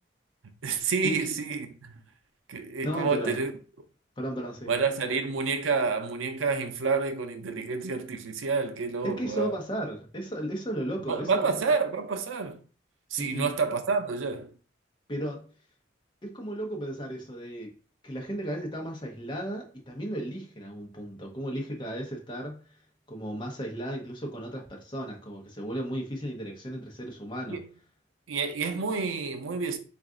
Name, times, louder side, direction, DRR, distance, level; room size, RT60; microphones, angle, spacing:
voice 1, 0.6-1.9 2.5-3.5 4.7-9.5 11.1-12.6 13.1-14.5 27.5-27.7 28.3-29.8, right 4 dB, 90° right, 0.5 m, -29 dB
voice 2, 2.8-3.4 4.2-4.7 9.0-11.6 13.2-13.5 15.1-15.5 16.2-17.7 18.0-22.6 23.1-27.6, right 1 dB, 25° left, 0.8 m, -35 dB
3.9 x 2.5 x 3.6 m
head